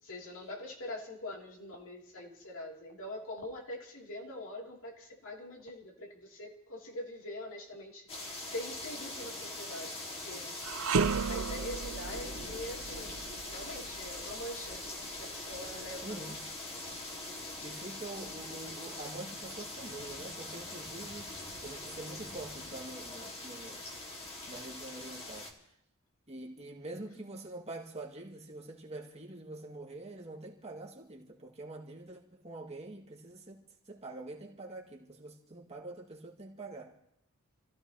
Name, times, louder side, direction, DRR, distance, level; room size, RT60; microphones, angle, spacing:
voice 1, 0.0-10.0 10.2-10.9 11.3-14.8 15.2-16.2, left 1 dB, 65° left, 3.1 m, -44 dB
sound 1, 8.1-25.5, left 2 dB, 25° left, 2.1 m, -43 dB
sound 2, 10.6-19.9 20.3-20.5 21.3-22.2, right 5 dB, 65° right, 0.6 m, -37 dB
voice 2, 16.0-16.5 17.6-21.3 21.6-23.8 24.5-25.5 26.3-36.9, right 2 dB, 30° right, 2.3 m, -45 dB
28.5 x 15.5 x 3.0 m
head